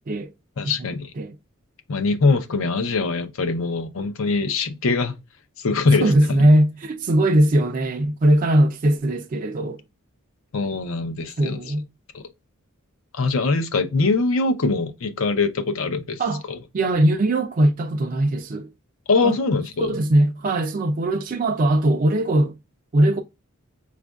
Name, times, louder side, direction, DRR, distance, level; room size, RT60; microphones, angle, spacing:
voice 1, 0.6-1.1 1.9-5.1 5.6-6.1 10.5-11.6 12.1-12.2 13.1-16.2 19.1-19.9, left 3 dB, 65° left, 0.5 m, -22 dB
voice 2, 5.9-9.8 11.4-11.8 16.2-16.4 16.7-18.7 19.2-19.4 19.8-22.6 22.9-23.2, right 1 dB, 40° right, 0.4 m, -20 dB
5.1 x 2.4 x 2.2 m
head